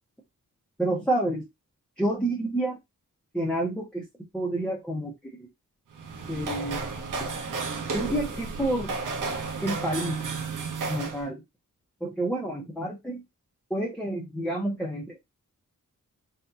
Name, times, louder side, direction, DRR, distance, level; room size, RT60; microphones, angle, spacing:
voice 1, 0.8-1.4 2.0-2.8 3.3-4.0 4.3-5.1 6.3-6.8 7.9-8.9 9.6-10.2 10.9-11.4 12.0-13.2 13.7-15.2, right 1 dB, 5° left, 1.1 m, -29 dB
sound 1, 5.9-11.2, right 4 dB, 65° right, 1.0 m, -33 dB
4.0 x 3.4 x 2.8 m
wide cardioid pair, 160°, 33 cm